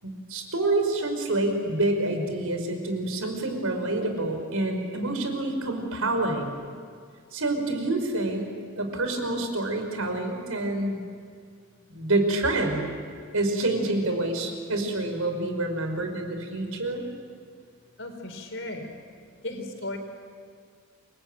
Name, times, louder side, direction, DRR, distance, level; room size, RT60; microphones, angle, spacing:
voice 1, 0.0-6.5 7.3-8.5 8.8-11.0 11.9-12.9 13.3-17.0, right 2 dB, 85° right, 5 dB, 5.1 m, -27 dB
voice 2, 18.0-18.9 19.4-20.0, left 2 dB, 60° left, 4 dB, 4.7 m, -35 dB
28.5 x 23.0 x 9.0 m, 2.2 s
head